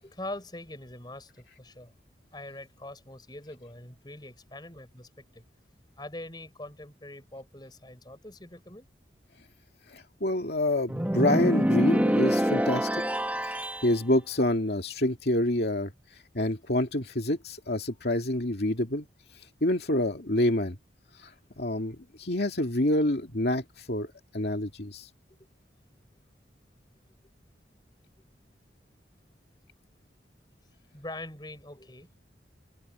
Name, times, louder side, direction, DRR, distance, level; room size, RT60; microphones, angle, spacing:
voice 1, 0.0-1.9 2.3-5.4 6.0-8.9 30.9-32.1, left 1 dB, 25° left, 5.4 m, -43 dB
voice 2, 9.9-12.9 13.4-13.6 13.8-15.9 16.3-19.1 19.6-20.8 21.2-21.3 21.6-24.1 24.3-25.1, left 1 dB, 60° left, 2.4 m, -27 dB
sound 1, 10.9-13.9, equal, 10° right, 1.0 m, -25 dB
head